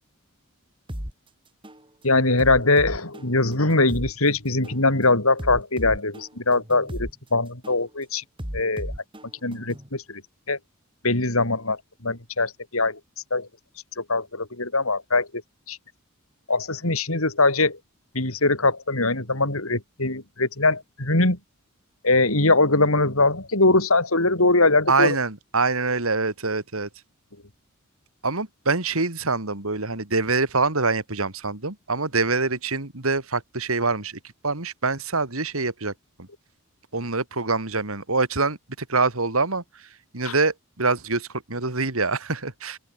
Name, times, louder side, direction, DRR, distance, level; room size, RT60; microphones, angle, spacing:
sound 1, 0.9-1.1 1.6-1.8 2.4-4.1 4.6-4.8 5.4-7.1 7.6-7.8 8.4-9.9, equal, 25° right, 4.7 m, -34 dB
voice 1, 2.0-8.2 8.5-8.9 9.4-10.2 10.5-10.6 11.0-13.0 13.3-13.5 14.0-15.3 15.7-15.8 16.5-17.8 18.1-21.4 22.0-25.1 40.3-40.4, left 2 dB, 80° left, 6.0 m, -22 dB
voice 2, 24.9-26.9 28.2-35.9 36.2-36.3 36.9-39.9 40.1-42.8, right 3 dB, 80° right, 2.9 m, -25 dB
open air
head